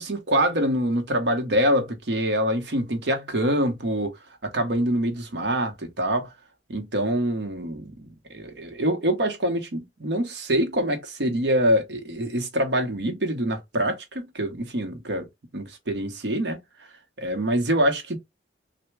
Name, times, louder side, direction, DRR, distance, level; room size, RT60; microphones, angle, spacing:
voice 1, 0.0-4.2 4.4-6.3 6.7-7.9 8.3-15.3 15.5-16.6 17.2-18.2, equal, 75° right, 0.9 m, -25 dB
3.3 x 2.2 x 3.1 m
head